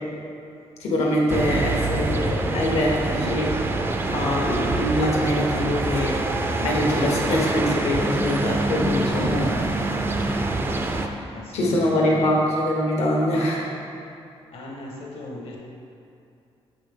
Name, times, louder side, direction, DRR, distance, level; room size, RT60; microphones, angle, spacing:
voice 1, 0.8-3.7 4.1-6.2 6.6-9.5 11.5-13.7, left 1 dB, 80° left, -3 dB, 1.3 m, -23 dB
sound 1, 1.3-11.1, right 2 dB, 20° right, 0.4 m, -25 dB
voice 2, 9.3-9.8 11.3-12.3 14.5-15.6, left 2 dB, 65° left, -1 dB, 1.1 m, -39 dB
7.0 x 5.2 x 3.6 m, 2.6 s
wide cardioid pair, 165°, 11 cm